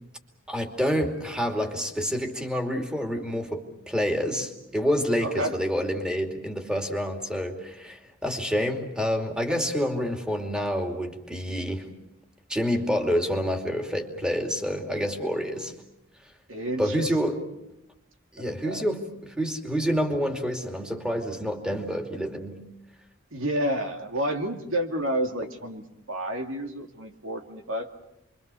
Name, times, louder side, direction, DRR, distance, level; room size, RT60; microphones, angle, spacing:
voice 1, 0.5-11.9 12.5-15.7 16.8-17.4 18.3-22.6, equal, 5° right, 3 dB, 2.7 m, -28 dB
voice 2, 5.2-5.6 16.5-17.1 18.4-18.8 23.3-27.9, right 1 dB, 70° right, 4 dB, 2.4 m, -30 dB
29.5 x 23.5 x 6.9 m, 0.85 s
head